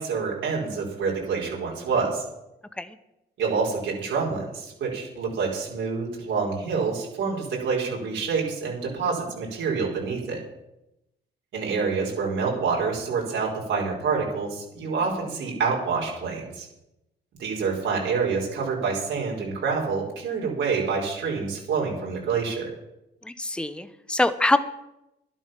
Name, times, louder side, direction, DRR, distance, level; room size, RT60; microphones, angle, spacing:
voice 1, 0.0-2.2 3.4-10.4 11.5-16.7 17.4-22.7, right 5 dB, 75° right, -3 dB, 5.0 m, -27 dB
voice 2, 23.2-24.6, left 2 dB, 5° left, 12 dB, 0.9 m, -24 dB
11.5 x 11.5 x 6.0 m, 0.89 s
cardioid pair, 90°, 20 cm